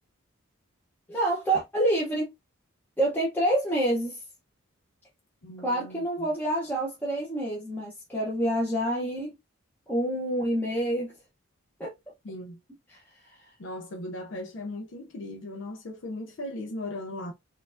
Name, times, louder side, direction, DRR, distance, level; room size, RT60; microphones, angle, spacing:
voice 1, 1.1-2.3 3.0-4.2 5.6-9.3 9.9-11.1 11.8-11.9 12.9-13.0 13.2-13.3, right 1 dB, 10° left, 0.7 m, -27 dB
voice 2, 5.4-6.3 12.2-12.6 13.6-17.3, left 1 dB, 60° left, 0.5 m, -38 dB
4.3 x 2.4 x 2.5 m
head